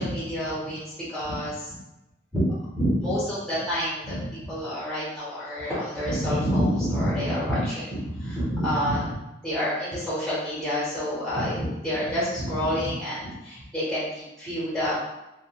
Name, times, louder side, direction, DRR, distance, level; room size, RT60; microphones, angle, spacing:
voice 1, 0.0-1.7 2.3-2.5 2.7-9.1 9.4-14.9, equal, ahead, -11 dB, 0.8 m, -28 dB
2.9 x 2.3 x 2.2 m, 0.95 s
head